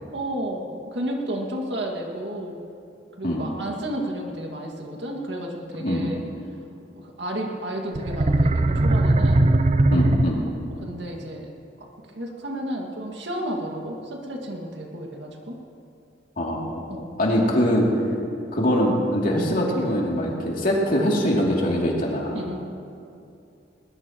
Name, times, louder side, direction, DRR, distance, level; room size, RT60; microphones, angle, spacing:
voice 1, 0.1-2.6 3.2-6.2 7.0-9.5 10.8-11.5 11.8-11.9 12.1-15.6 16.9-17.1 22.3-22.6, right 1 dB, 70° right, 1 dB, 2.1 m, -32 dB
sound 1, 7.9-10.7, right 2 dB, 35° right, 0.6 m, -19 dB
voice 2, 9.9-10.4 16.4-16.7 17.2-18.1 18.5-22.4, equal, 50° left, -3 dB, 2.8 m, -22 dB
21.0 x 20.0 x 3.0 m, 2.6 s
head